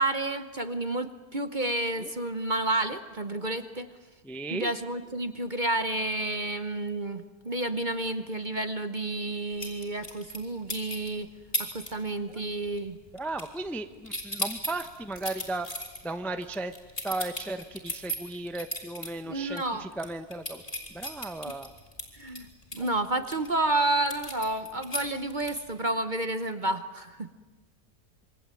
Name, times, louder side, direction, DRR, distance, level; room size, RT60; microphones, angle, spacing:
voice 1, 0.0-3.9 4.5-11.3 11.6-13.0 19.3-19.9 22.1-27.3, right 2 dB, 35° right, 10 dB, 1.0 m, -30 dB
voice 2, 4.2-4.7 12.3-12.4 13.1-15.7 16.0-16.7 17.0-20.6 20.9-21.7 22.8-22.9, right 2 dB, ahead, 9 dB, 0.7 m, -35 dB
sound 1, 9.6-10.4 10.7-11.1 11.5-11.9 12.2-12.5 12.8-13.8 14.0-19.1 19.5-19.6 19.9-23.5 24.1-25.7, equal, 20° left, 4.5 m, -35 dB
27.0 x 23.5 x 9.1 m, 1.2 s
omnidirectional pair, 1.7 m